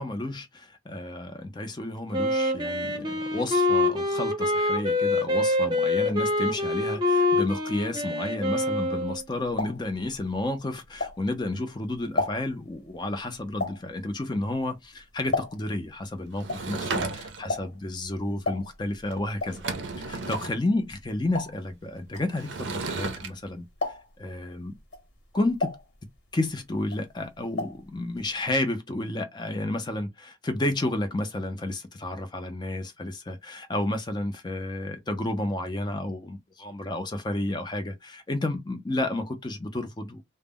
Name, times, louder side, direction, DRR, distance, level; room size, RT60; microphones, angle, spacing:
voice 1, 0.0-19.6 20.0-23.6 24.2-24.8 25.3-25.8 26.3-40.2, left 2 dB, 25° left, 0.4 m, -31 dB
Wind instrument woodwind instrument, 2.1-9.2, left 2 dB, 25° right, 0.7 m, -25 dB
sound 1, 9.0-11.6 11.9-15.9 16.1-23.4 23.7-24.3 24.8-26.5 26.8-27.9 28.1-28.2 28.5-28.6, left 3 dB, 65° left, 1.1 m, -34 dB
Sliding door / Wood, 16.4-17.6 19.1-19.2 19.5-20.6 22.4-23.3, right 3 dB, 75° right, 0.5 m, -33 dB
2.1 x 2.0 x 3.5 m
head